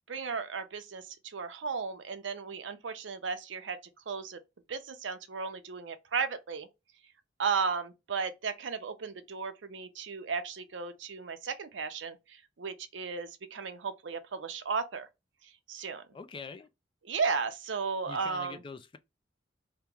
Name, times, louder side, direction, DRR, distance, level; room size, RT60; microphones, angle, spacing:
voice 1, 0.1-3.8 4.1-4.4 4.7-6.7 7.4-15.1 15.7-16.0 17.0-18.6, right 5 dB, 85° right, 0.6 m, -35 dB
voice 2, 16.1-16.7 18.0-19.0, left 4 dB, 30° left, 0.3 m, -44 dB
2.9 x 2.1 x 3.5 m
head